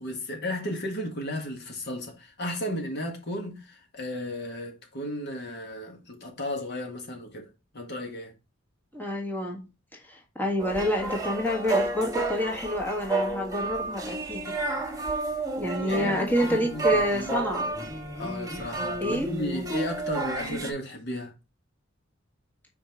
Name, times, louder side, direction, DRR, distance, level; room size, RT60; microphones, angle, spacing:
voice 1, 0.0-8.3 15.7-17.4 18.1-21.3, left 1 dB, 55° left, 1.7 m, -34 dB
voice 2, 8.9-9.7 10.0-14.6 15.6-17.7 19.0-19.3, left 1 dB, 10° left, 1.6 m, -28 dB
sound 1, 10.6-20.7, right 2 dB, 20° right, 1.5 m, -31 dB
5.6 x 4.5 x 4.4 m
head